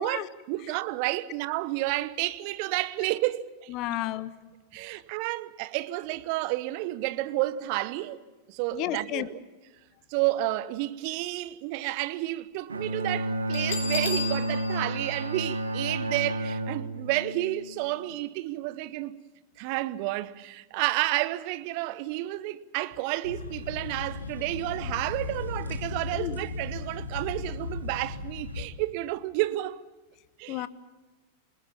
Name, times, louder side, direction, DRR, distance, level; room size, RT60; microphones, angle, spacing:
voice 1, 0.0-3.7 4.7-8.2 8.5-9.4 10.1-19.2 19.6-29.8 30.4-30.7, right 17 dB, 45° right, 1.1 m, -31 dB
voice 2, 3.7-4.3 8.7-9.3 26.1-26.4 30.5-30.7, left 14 dB, 40° left, 1.2 m, -32 dB
Bowed string instrument, 12.7-18.1, right 1 dB, 75° right, 1.7 m, -31 dB
Bell, 13.5-16.2, left 5 dB, 60° left, 4.2 m, -36 dB
sound 1, 23.2-28.7, left 3 dB, 75° left, 2.3 m, -36 dB
27.5 x 21.0 x 7.3 m
figure-of-eight pair, 90°, 0 cm